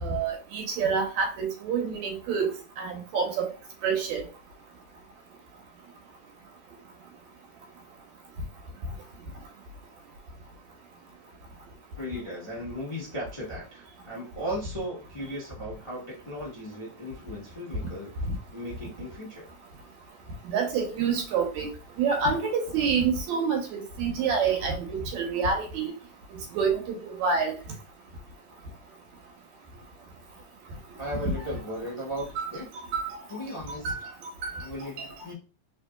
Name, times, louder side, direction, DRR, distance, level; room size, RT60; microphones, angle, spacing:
voice 1, 0.0-2.5 2.8-3.5 3.8-4.2 18.2-18.3 20.5-21.7 22.0-25.9 26.5-27.5 31.3-31.4 32.4-32.5 32.9-33.2 33.7-34.7 35.0-35.1, right 5 dB, 75° right, 2 dB, 2.2 m, -27 dB
voice 2, 12.0-18.1 18.5-19.5 31.0-32.7 33.3-33.9 34.6-35.3, equal, 50° left, -7 dB, 0.3 m, -36 dB
4.4 x 3.4 x 2.3 m, 0.33 s
omnidirectional pair, 3.4 m